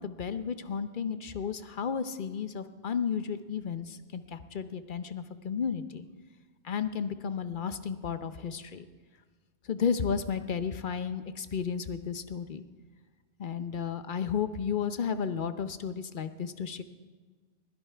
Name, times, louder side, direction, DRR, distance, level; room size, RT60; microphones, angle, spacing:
voice 1, 0.0-6.0 6.6-8.8 9.7-12.6 13.4-16.8, left 7 dB, 50° left, 11 dB, 0.8 m, -33 dB
22.0 x 16.0 x 3.4 m, 1.4 s
omnidirectional pair, 1.2 m